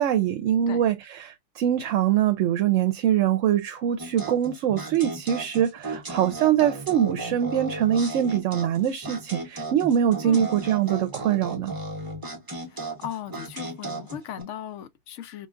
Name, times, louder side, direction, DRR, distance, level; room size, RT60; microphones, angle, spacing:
voice 1, 0.0-11.7, right 10 dB, 75° right, 0.9 m, -23 dB
sound 1, 4.0-14.4, right 2 dB, 20° right, 0.9 m, -35 dB
voice 2, 12.7-15.5, left 10 dB, 70° left, 0.9 m, -37 dB
4.9 x 2.3 x 2.4 m
omnidirectional pair, 1.3 m